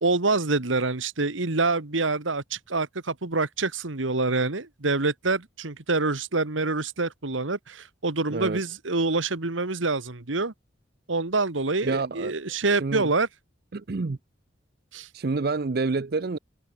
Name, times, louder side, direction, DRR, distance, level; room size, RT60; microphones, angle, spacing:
voice 1, 0.0-10.5 11.1-13.3 14.9-15.1, right 3 dB, 85° right, 1.7 m, -26 dB
voice 2, 8.3-8.6 11.8-12.3 12.7-13.1 13.7-14.2 15.1-16.4, right 3 dB, 50° right, 0.5 m, -28 dB
head